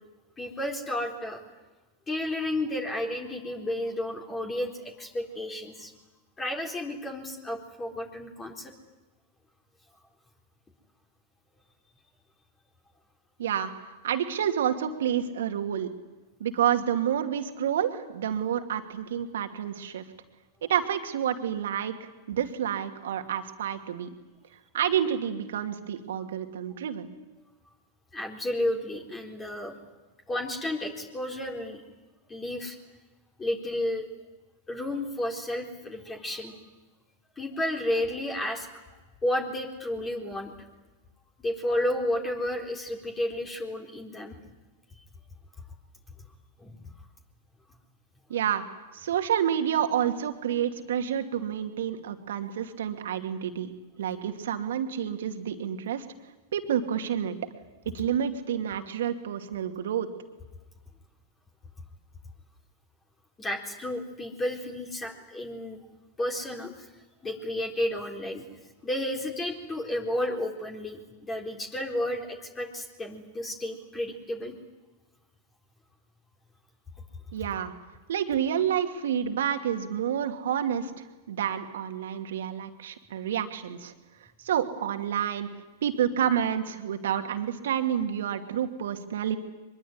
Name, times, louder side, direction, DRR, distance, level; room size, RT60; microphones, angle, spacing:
voice 1, 0.4-1.4 2.1-5.9 6.4-8.7 28.1-29.8 30.3-31.8 32.3-32.8 33.4-34.1 34.7-36.6 37.4-38.7 39.2-40.7 41.4-44.4 46.6-46.8 63.4-65.8 66.2-66.9 67.2-68.4 68.8-74.5, left 1 dB, 20° left, 2 dB, 4.0 m, -32 dB
voice 2, 13.4-13.7 14.0-15.9 16.4-20.0 20.6-24.2 24.7-27.1 48.3-48.6 48.9-53.7 54.0-56.0 56.5-57.4 57.9-60.1 77.3-77.7 78.1-83.9 84.4-85.5 85.8-89.4, right 9 dB, 70° right, 6 dB, 2.6 m, -29 dB
23.5 x 22.5 x 9.7 m, 1.2 s
hypercardioid pair, 100°, 0 cm